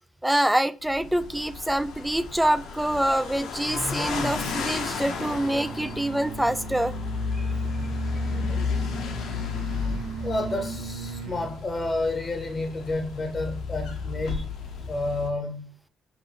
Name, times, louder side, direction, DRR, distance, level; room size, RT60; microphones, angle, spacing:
voice 1, 0.2-7.0 7.4-7.5 8.5-8.6, right 1 dB, 5° right, 0.3 m, -25 dB
sound 1, 0.8-15.3, left 5 dB, 80° left, 0.7 m, -33 dB
sound 2, 4.2-11.6, right 6 dB, 80° right, 0.9 m, -38 dB
voice 2, 10.2-14.4 14.9-15.7, left 2 dB, 30° left, 0.8 m, -30 dB
5.4 x 2.5 x 2.9 m
cardioid pair, 90°, 0 cm